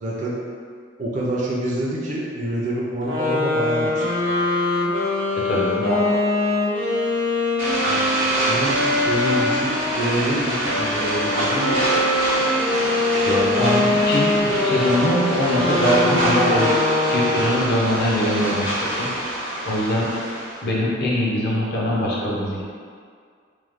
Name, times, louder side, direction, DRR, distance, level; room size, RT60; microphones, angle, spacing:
voice 1, 0.0-0.4 1.0-4.3 7.9-12.1, right 1 dB, 40° right, -5 dB, 0.4 m, -27 dB
sound 1, 3.0-10.0 10.6-17.8, left 2 dB, 75° right, 0.7 m, -23 dB
voice 2, 5.4-6.3 13.2-19.1 19.7-20.1 20.6-22.6, equal, 55° left, -5 dB, 0.6 m, -22 dB
sound 2, 7.6-20.6, right 1 dB, 75° left, 1.3 m, -25 dB
3.0 x 2.0 x 3.4 m, 2.1 s
head